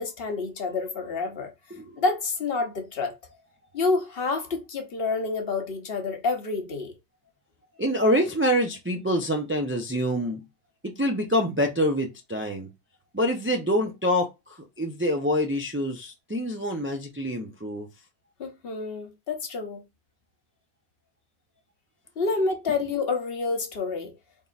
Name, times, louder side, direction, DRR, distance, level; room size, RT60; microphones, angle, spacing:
voice 1, 0.0-1.5 2.0-3.2 3.7-6.9 18.4-19.8 22.2-24.1, left 3 dB, 55° left, 1.0 m, -28 dB
voice 2, 7.8-10.4 10.8-12.7 13.1-17.9, equal, 20° right, 0.3 m, -26 dB
4.0 x 3.6 x 2.4 m
omnidirectional pair, 1.2 m